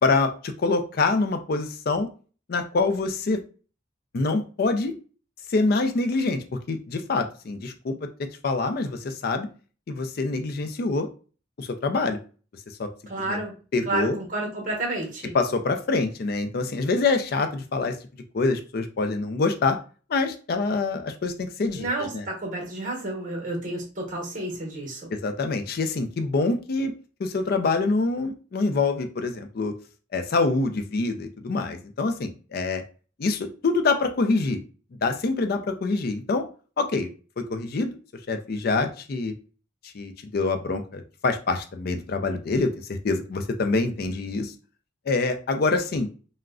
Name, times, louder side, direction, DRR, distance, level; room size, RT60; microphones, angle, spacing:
voice 1, 0.0-2.1 2.5-3.4 4.1-4.9 5.5-7.9 8.4-9.5 9.9-11.1 11.6-12.2 12.8-12.9 13.3-13.4 13.7-14.2 15.3-18.0 18.3-19.8 20.1-21.9 22.1-22.2 25.1-26.9 27.2-29.7 30.1-32.8 33.2-34.6 35.0-36.4 36.8-37.1 37.4-38.0 38.3-39.3 39.9-44.5 45.1-46.1, left 3 dB, 50° left, 7 dB, 0.4 m, -25 dB
voice 2, 13.1-13.5 13.9-15.3 21.7-25.1, right 2 dB, 40° right, -1 dB, 0.9 m, -30 dB
3.5 x 2.1 x 2.3 m, 0.36 s
head